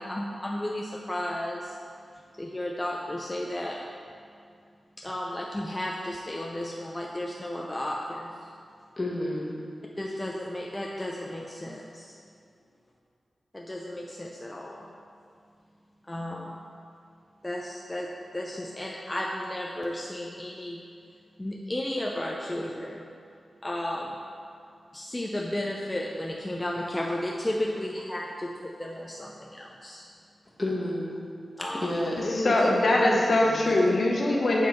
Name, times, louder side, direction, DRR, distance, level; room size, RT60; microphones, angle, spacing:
voice 1, 0.0-1.8 2.4-3.8 5.0-8.4 10.0-12.2 13.5-14.9 16.1-16.6 17.4-20.8 21.4-23.0 23.6-24.2 24.9-30.1 31.6-31.9, left 1 dB, 15° left, -2 dB, 0.5 m, -33 dB
voice 2, 9.0-9.5 30.6-31.1 31.7-32.6 32.9-33.9, left 1 dB, 35° left, -3 dB, 1.2 m, -31 dB
voice 3, 32.3-34.7, left 1 dB, 65° left, -2 dB, 0.8 m, -22 dB
7.4 x 3.7 x 4.4 m, 2.4 s
wide cardioid pair, 80°, 0 cm